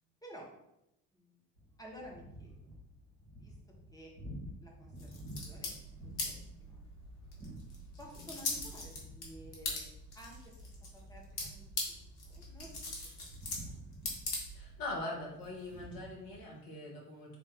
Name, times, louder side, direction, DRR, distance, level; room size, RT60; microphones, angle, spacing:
sound 1, 1.6-16.4, equal, 90° right, 1.0 m, -52 dB
voice 1, 1.8-2.7 3.4-3.5 3.9-4.1 4.6-5.1 5.4-5.7 6.0-6.8 8.0-9.8 10.1-10.5 10.9-12.0 12.2-12.9 13.2-13.3 13.6-13.8, equal, 10° left, -2 dB, 1.4 m, -53 dB
sound 2, 5.0-14.9, left 2 dB, 70° left, 1.2 m, -42 dB
voice 2, 14.5-17.4, left 2 dB, 45° left, -2 dB, 1.6 m, -42 dB
3.6 x 3.5 x 3.8 m, 0.85 s
figure-of-eight pair, 50°, 47 cm